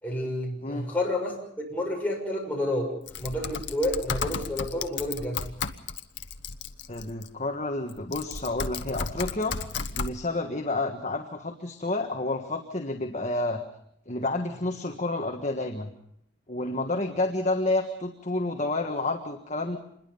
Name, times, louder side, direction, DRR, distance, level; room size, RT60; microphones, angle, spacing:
voice 1, 0.0-2.9 3.2-5.4, left 1 dB, 10° left, -2 dB, 6.5 m, -30 dB
Typing, 3.1-7.3 7.9-10.1, left 5 dB, 55° left, 1.0 m, -34 dB
voice 2, 6.9-9.6 9.9-13.6 14.1-15.9 16.5-19.8, left 2 dB, 35° left, 3 dB, 1.5 m, -30 dB
26.5 x 21.5 x 5.5 m, 0.73 s
head